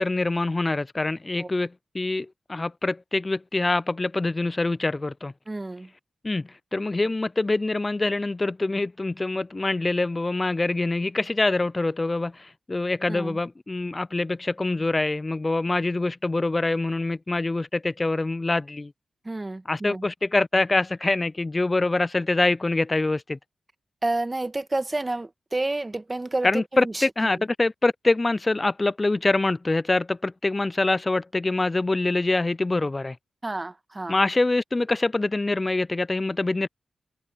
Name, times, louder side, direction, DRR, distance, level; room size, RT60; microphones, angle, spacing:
voice 1, 0.0-5.3 6.2-18.9 19.7-23.4 26.4-33.2 34.1-36.7, left 2 dB, 35° left, 0.4 m, -25 dB
voice 2, 5.5-5.9 13.1-13.4 19.2-20.1 24.0-27.4 33.4-34.2, right 2 dB, 30° right, 1.5 m, -30 dB
supercardioid pair, 40°, 0 cm